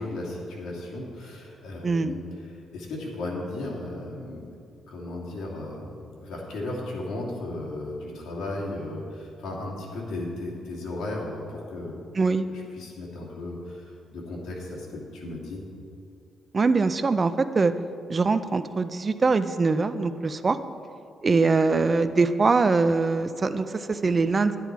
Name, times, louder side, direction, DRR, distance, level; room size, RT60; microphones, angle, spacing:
voice 1, 0.0-4.4 4.9-11.9 12.5-15.6, left 2 dB, 90° left, -3 dB, 2.5 m, -35 dB
voice 2, 16.5-17.7 18.1-20.6 21.2-24.6, right 4 dB, 25° right, 11 dB, 0.4 m, -23 dB
11.0 x 10.0 x 4.6 m, 2.5 s
cardioid pair, 145°, 0 cm